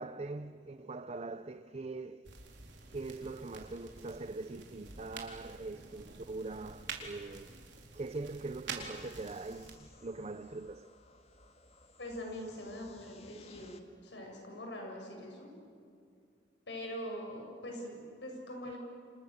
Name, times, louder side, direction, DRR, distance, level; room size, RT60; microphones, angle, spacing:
voice 1, 0.0-2.4 2.9-7.6 7.9-10.9, right 3 dB, 35° right, 0.6 m, -42 dB
sound 1, 2.2-9.8, right 4 dB, 80° right, 4.3 m, -48 dB
sound 2, 8.8-13.8, left 3 dB, 35° left, 1.9 m, -59 dB
voice 2, 12.0-15.5 16.7-18.8, equal, 75° left, 7.3 m, -43 dB
29.5 x 27.0 x 7.3 m
head